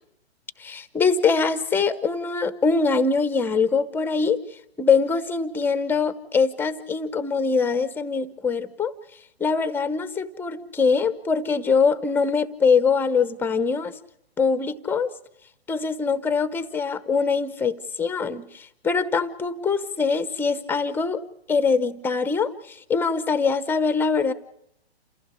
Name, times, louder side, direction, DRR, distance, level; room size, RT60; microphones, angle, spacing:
voice 1, 0.6-4.4 4.8-8.9 9.4-14.0 14.4-15.1 15.7-21.2 21.5-24.3, left 5 dB, 5° left, 13 dB, 0.9 m, -23 dB
28.5 x 15.0 x 6.4 m, 0.77 s
hypercardioid pair, 140°, 32 cm